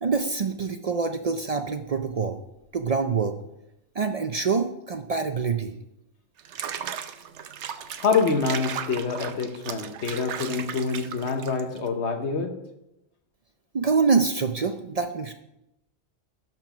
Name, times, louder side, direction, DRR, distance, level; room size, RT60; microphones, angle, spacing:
voice 1, 0.0-2.4 2.7-3.4 4.0-5.7 13.7-15.3, right 5 dB, 50° right, 7 dB, 0.5 m, -25 dB
Water / Bathtub (filling or washing), 6.4-11.9, right 8 dB, 80° right, 1.0 m, -36 dB
voice 2, 8.0-12.6, left 5 dB, 75° left, 5 dB, 1.3 m, -26 dB
12.0 x 4.5 x 5.7 m, 0.86 s
omnidirectional pair, 1.2 m